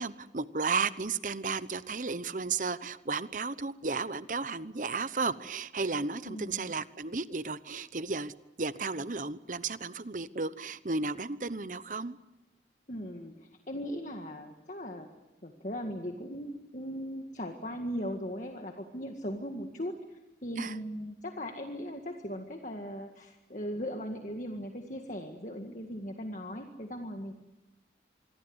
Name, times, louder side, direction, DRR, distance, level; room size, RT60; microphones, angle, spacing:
voice 1, 0.0-8.3 8.6-12.2 20.6-20.8, right 4 dB, 45° right, 15 dB, 0.9 m, -33 dB
voice 2, 6.3-6.7 12.9-15.1 15.4-27.3, equal, 45° left, 4 dB, 1.9 m, -38 dB
26.0 x 23.0 x 8.0 m, 1.0 s
head